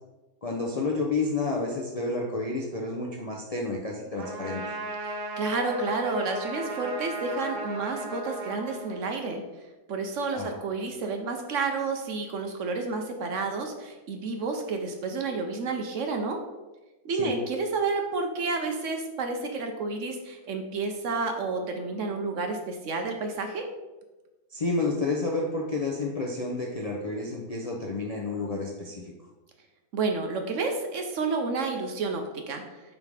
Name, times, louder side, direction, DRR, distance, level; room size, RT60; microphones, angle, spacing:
voice 1, 0.4-4.6 10.3-10.5 17.2-17.3 24.5-29.1, left 3 dB, 75° left, -1 dB, 0.3 m, -30 dB
Trumpet, 4.2-9.4, right 1 dB, 90° right, 1.6 m, -36 dB
voice 2, 5.4-9.4 9.9-16.4 17.0-23.7 29.9-32.6, right 4 dB, 65° right, 4 dB, 0.8 m, -30 dB
5.3 x 3.7 x 4.7 m, 1.1 s
omnidirectional pair, 1.7 m